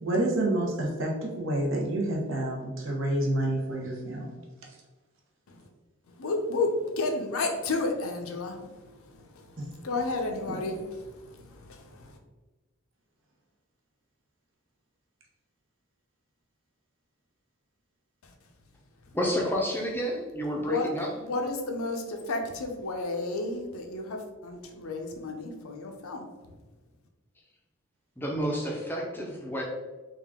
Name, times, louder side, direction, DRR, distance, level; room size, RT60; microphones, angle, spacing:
voice 1, 0.0-4.3 9.6-9.7 10.5-10.6, right 1 dB, 60° right, -1 dB, 0.8 m, -28 dB
voice 2, 6.1-12.2 18.2-18.3 20.6-26.3, left 2 dB, 75° left, 3 dB, 0.5 m, -32 dB
voice 3, 19.1-21.1 28.2-29.6, equal, 10° left, -2 dB, 0.5 m, -30 dB
3.6 x 2.4 x 3.5 m, 1.2 s
head